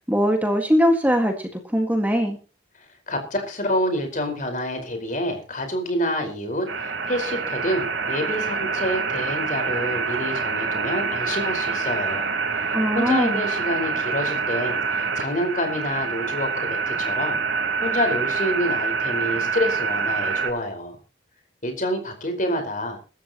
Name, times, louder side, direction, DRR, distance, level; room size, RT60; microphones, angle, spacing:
voice 1, 0.0-2.4 12.7-13.4, equal, 10° right, 3 dB, 1.8 m, -21 dB
voice 2, 3.1-12.3 12.6-12.7 12.9-17.4 17.8-21.0 21.6-23.0, equal, 45° left, 5 dB, 4.8 m, -27 dB
sound 1, 6.7-20.5, right 5 dB, 80° right, 4.0 m, -26 dB
24.0 x 13.0 x 3.0 m, 0.34 s
head